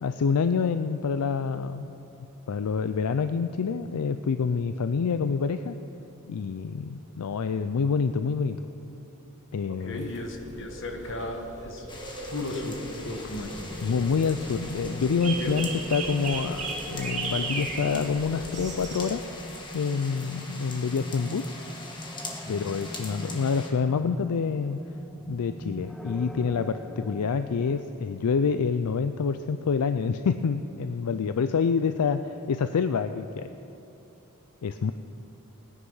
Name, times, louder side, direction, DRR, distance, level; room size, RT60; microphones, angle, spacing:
voice 1, 0.0-1.9 2.5-5.8 6.3-8.6 9.5-10.1 13.8-19.2 19.7-21.5 22.5-24.8 25.3-33.5 34.6-34.9, left 5 dB, 80° left, 10 dB, 0.4 m, -27 dB
voice 2, 9.7-12.0 12.3-13.6 15.4-15.5 22.4-22.7, left 1 dB, 60° left, 4 dB, 1.5 m, -35 dB
sound 1, 9.9-19.1, right 3 dB, 35° right, 1.7 m, -37 dB
sound 2, 11.9-23.7, left 2 dB, 20° left, 1.5 m, -42 dB
sound 3, 12.7-27.8, equal, ahead, 0.4 m, -41 dB
18.0 x 9.8 x 5.6 m, 2.9 s
head